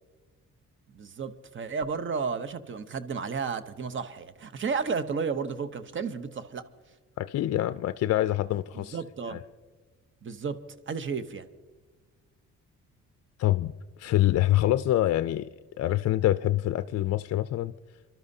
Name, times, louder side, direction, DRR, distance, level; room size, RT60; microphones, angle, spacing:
voice 1, 0.9-6.6 8.7-9.4 10.2-10.6 10.9-11.5, right 5 dB, 40° right, 12 dB, 0.9 m, -32 dB
voice 2, 7.2-9.0 9.3-9.4 13.4-13.7 14.0-15.5 15.8-17.7, left 14 dB, 55° left, 12 dB, 0.4 m, -25 dB
29.0 x 12.0 x 2.7 m, 1.3 s
cardioid pair, 90°, 30 cm